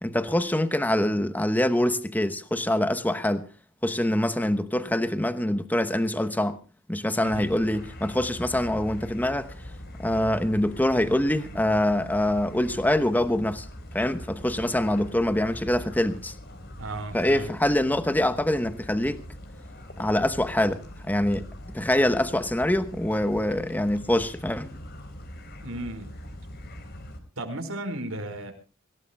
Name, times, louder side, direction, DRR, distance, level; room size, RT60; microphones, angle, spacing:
voice 1, 0.0-3.5 3.8-6.6 6.9-9.5 10.0-13.7 13.9-16.3 17.1-19.2 20.0-21.5 21.7-24.7, left 1 dB, 10° left, 1.0 m, -25 dB
sound 1, 7.3-27.2, equal, 50° left, 4.1 m, -42 dB
voice 2, 16.8-17.5 25.6-26.1 27.4-28.5, right 1 dB, 80° right, 4.9 m, -34 dB
25.5 x 17.0 x 2.3 m
head